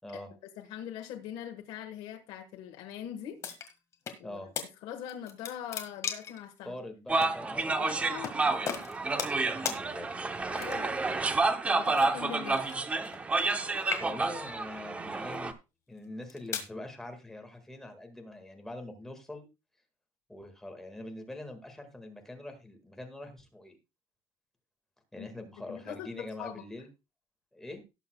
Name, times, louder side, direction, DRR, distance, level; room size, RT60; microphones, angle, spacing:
voice 1, 0.6-3.4 4.2-4.4 4.8-6.7 7.6-8.9 10.5-11.0 11.6-12.6 25.2-25.3 25.6-26.6, left 10 dB, 80° left, 1.4 m, -42 dB
sound 1, 3.4-4.2 4.6-4.7 5.1-6.4 7.2-7.3 8.2-8.4 8.7-9.4 9.7-9.8 10.5-11.0 12.0-13.6 13.8-14.4 15.1-15.4 16.0-16.7, left 7 dB, 35° left, 1.6 m, -37 dB
voice 2, 6.6-7.9 9.5-10.1 14.0-15.5 15.9-19.5 20.3-23.8 25.1-26.9 27.5-27.8, left 1 dB, 5° left, 1.7 m, -43 dB
sound 2, 7.1-15.5, right 3 dB, 15° right, 0.7 m, -30 dB
18.0 x 7.1 x 2.2 m
cardioid pair, 175°, 9 cm